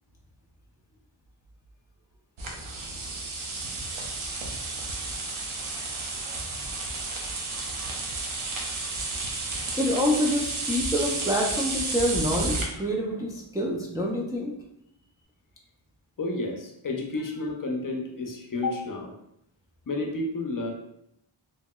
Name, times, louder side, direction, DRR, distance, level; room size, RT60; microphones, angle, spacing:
sound 1, 2.4-12.6, right 3 dB, 90° right, 0.6 m, -32 dB
voice 1, 9.8-14.5, equal, 10° right, -2 dB, 0.3 m, -27 dB
voice 2, 16.2-19.1 19.9-20.7, left 2 dB, 45° left, 1 dB, 0.5 m, -31 dB
2.9 x 2.8 x 2.2 m, 0.78 s
wide cardioid pair, 80°, 47 cm